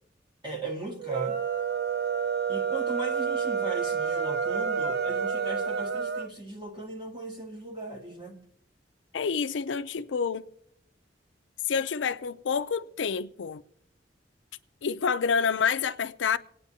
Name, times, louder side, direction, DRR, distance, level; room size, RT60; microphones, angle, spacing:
voice 1, 0.4-1.4 2.5-8.5, right 2 dB, 25° right, 1.5 m, -38 dB
sound 1, 1.0-6.3, right 6 dB, 60° right, 0.5 m, -29 dB
voice 2, 9.1-10.5 11.7-13.6 14.8-16.4, left 6 dB, 80° left, 0.5 m, -28 dB
25.5 x 9.1 x 2.8 m
head